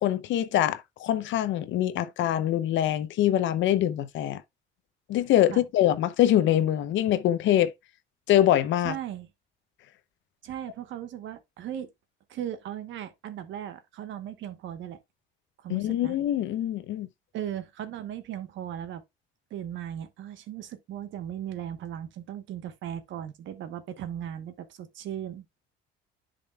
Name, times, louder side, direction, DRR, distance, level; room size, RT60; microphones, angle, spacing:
voice 1, 0.0-4.4 5.1-7.7 8.3-9.0 15.7-17.1, left 12 dB, 70° left, 0.8 m, -24 dB
voice 2, 8.8-9.3 10.4-11.9 12.3-15.0 15.6-16.2 17.3-19.0 19.5-25.4, right 10 dB, 70° right, 1.2 m, -37 dB
10.5 x 5.2 x 2.3 m
cardioid pair, 115°, 20 cm